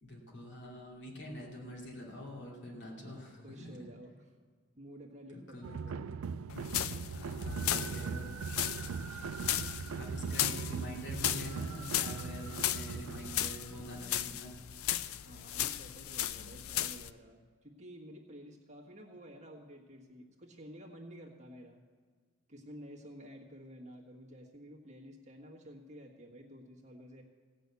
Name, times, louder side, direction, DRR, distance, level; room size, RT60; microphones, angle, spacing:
voice 1, 0.0-3.8 5.3-6.0 7.1-8.2 10.0-14.5, left 1 dB, 55° left, -2 dB, 2.5 m, -46 dB
voice 2, 2.7-4.3 4.7-6.0 15.2-21.8 22.5-27.2, equal, 35° right, 0 dB, 1.5 m, -51 dB
sound 1, 5.6-14.1, right 5 dB, 75° right, 0.4 m, -40 dB
sound 2, 6.5-17.1, left 11 dB, 80° left, 0.4 m, -36 dB
16.5 x 6.2 x 8.2 m, 1.6 s
head